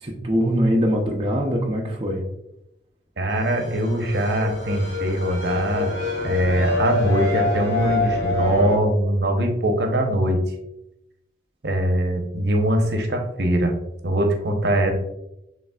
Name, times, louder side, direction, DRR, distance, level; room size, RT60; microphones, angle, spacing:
voice 1, 0.0-2.2, equal, 30° right, -2 dB, 0.6 m, -22 dB
voice 2, 3.2-6.0 6.2-10.4 11.6-13.8 14.0-14.9, right 1 dB, 65° right, 4 dB, 0.8 m, -22 dB
sound 1, 3.3-8.8, left 3 dB, 75° left, 1.5 m, -26 dB
6.9 x 3.2 x 2.3 m, 0.85 s
head